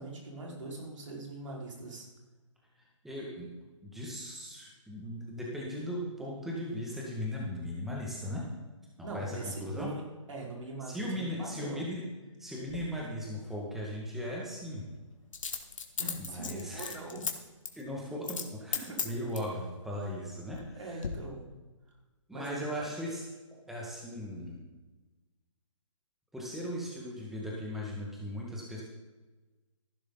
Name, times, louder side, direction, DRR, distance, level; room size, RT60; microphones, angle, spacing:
voice 1, 0.0-2.0 9.0-10.0 10.3-11.9 16.0-17.2 18.9-19.0 20.8-21.5 22.3-22.6, right 2 dB, 70° right, -2 dB, 4.9 m, -41 dB
voice 2, 3.0-3.5 3.8-8.5 9.0-9.9 10.8-12.1 12.4-14.9 16.2-16.9 17.7-21.1 22.3-23.2 23.7-24.7 26.3-28.8, left 1 dB, ahead, -4 dB, 1.9 m, -38 dB
Coin (dropping), 12.7-12.8 15.3-17.3 17.6-17.8 18.2-18.5 18.7-19.5 20.2-20.7 21.0-21.1, left 5 dB, 70° left, 1.9 m, -35 dB
15.0 x 11.5 x 4.0 m, 1.2 s
hypercardioid pair, 150°, 17 cm